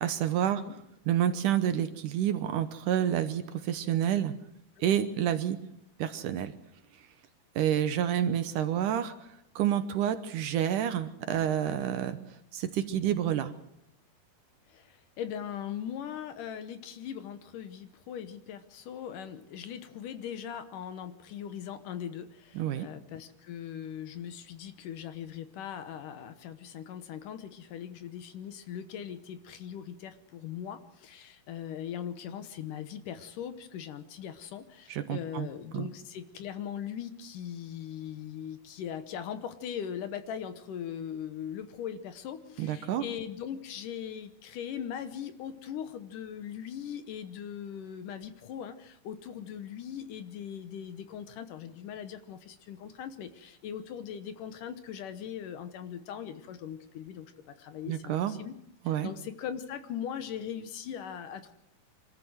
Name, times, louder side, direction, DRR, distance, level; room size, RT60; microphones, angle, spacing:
voice 1, 0.0-0.6 1.1-4.3 4.8-5.6 6.0-6.5 7.6-9.1 9.6-12.2 12.5-13.5 22.6-22.9 34.9-35.5 35.7-35.9 42.6-43.0 57.9-58.3 58.9-59.1, right 10 dB, 70° right, 10 dB, 2.3 m, -28 dB
voice 2, 14.7-57.3 57.6-58.6 58.9-61.5, left 9 dB, 70° left, 10 dB, 2.4 m, -40 dB
25.0 x 14.0 x 7.9 m, 0.80 s
omnidirectional pair, 4.2 m